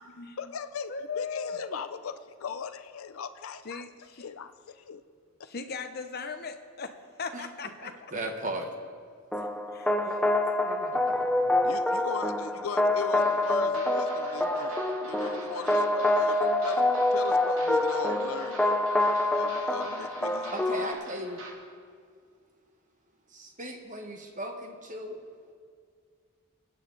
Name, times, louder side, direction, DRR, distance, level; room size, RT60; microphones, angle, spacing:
voice 1, 0.4-3.8 4.2-5.0 11.6-16.8 17.1-18.9 19.3-21.0, left 6 dB, 90° left, 10 dB, 0.5 m, -39 dB
voice 2, 0.9-1.8 3.6-4.3 5.4-6.9 7.2-7.9 9.7-9.9, left 5 dB, 50° left, 7 dB, 0.9 m, -37 dB
voice 3, 8.1-8.7 10.0-10.4 10.6-11.6 20.5-21.4 23.3-25.2, right 1 dB, 40° right, 3 dB, 1.5 m, -37 dB
sound 1, 9.3-20.9, left 2 dB, 5° left, 0.5 m, -26 dB
sound 2, 13.2-21.5, right 2 dB, 75° right, 2.4 m, -45 dB
24.0 x 8.4 x 4.0 m, 2.1 s
head